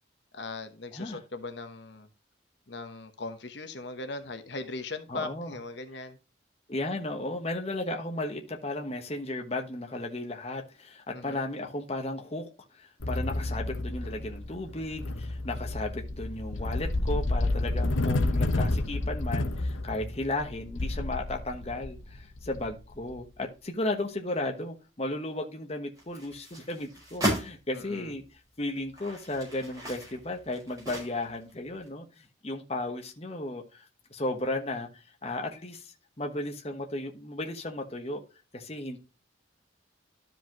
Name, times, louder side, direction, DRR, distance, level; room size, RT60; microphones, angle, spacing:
voice 1, 0.3-2.1 2.7-6.2 11.1-11.4 27.7-28.1, left 3 dB, 65° left, 1.1 m, -39 dB
voice 2, 5.1-5.5 6.7-28.2 28.6-35.9 36.2-38.2 38.5-39.0, left 2 dB, 30° left, 1.1 m, -35 dB
sound 1, 13.0-23.2, left 2 dB, 85° left, 0.9 m, -30 dB
sound 2, 26.0-27.5 28.2-28.3 28.8-31.5 31.8-31.9, right 1 dB, 20° right, 5.2 m, -35 dB
12.5 x 5.1 x 3.0 m
head